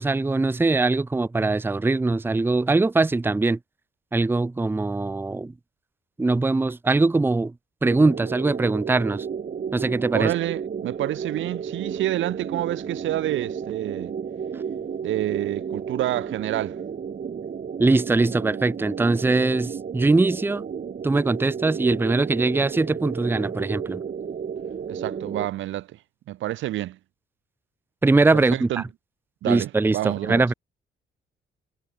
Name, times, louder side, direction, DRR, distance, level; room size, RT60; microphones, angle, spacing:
voice 1, 0.0-3.6 4.1-5.5 6.2-7.5 7.8-9.3 9.7-10.3 17.8-20.6 21.0-24.0 28.0-28.7 29.4-30.5, right 3 dB, 10° right, 0.6 m, -22 dB
sound 1, 7.8-25.5, right 7 dB, 45° right, 4.1 m, -33 dB
voice 2, 10.1-14.1 15.0-16.8 24.9-26.0 26.3-27.0 28.3-28.8 29.4-30.5, right 14 dB, 75° right, 0.7 m, -28 dB
cardioid pair, 90°, 20 cm